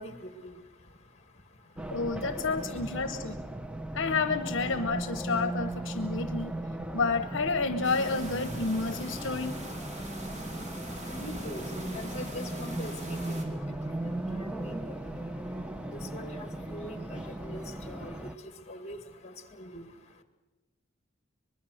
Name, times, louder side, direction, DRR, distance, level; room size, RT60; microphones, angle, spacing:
voice 1, 0.0-2.2 2.6-3.3 10.3-20.2, equal, 35° left, 8 dB, 2.0 m, -45 dB
Race car auto racing, 1.8-18.3, right 1 dB, 5° right, 0.7 m, -37 dB
voice 2, 1.9-3.3 3.9-6.5 6.9-9.6, left 4 dB, 65° left, 9 dB, 0.9 m, -30 dB
sound 1, 7.8-13.4, equal, 40° right, 3.2 m, -42 dB
24.5 x 21.0 x 6.5 m, 1.2 s
head